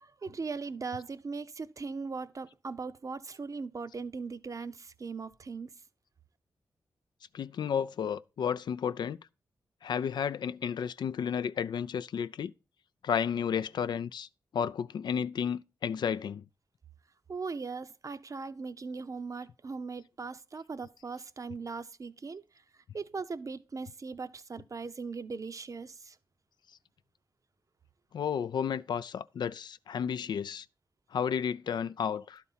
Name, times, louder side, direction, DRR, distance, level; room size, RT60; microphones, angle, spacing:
voice 1, 0.0-5.7 17.3-22.5 22.9-26.2, right 4 dB, 45° right, 0.6 m, -39 dB
voice 2, 7.3-9.2 9.8-12.5 13.0-14.3 14.5-16.4 28.1-30.7 31.1-32.4, left 7 dB, 70° left, 0.3 m, -32 dB
11.5 x 4.1 x 5.6 m
cardioid pair, 55°, 8 cm